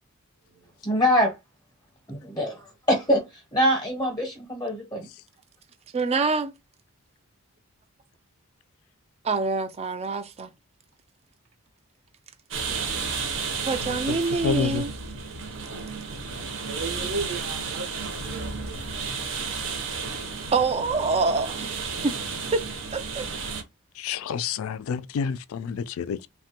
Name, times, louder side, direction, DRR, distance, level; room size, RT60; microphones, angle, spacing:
voice 1, 0.8-1.3 2.1-3.2 3.5-5.0, equal, 20° left, 0.7 m, -24 dB
voice 2, 5.9-6.5 9.2-10.5 13.7-14.9 20.5-22.1 22.5-22.6 22.9-23.3, right 4 dB, 30° right, 0.3 m, -26 dB
sound 1, 12.5-23.6, right 5 dB, 60° right, 0.7 m, -32 dB
voice 3, 14.4-14.8 24.0-26.3, left 6 dB, 65° left, 0.3 m, -29 dB
voice 4, 16.6-18.9, right 3 dB, 90° right, 0.9 m, -35 dB
3.3 x 2.2 x 2.8 m
head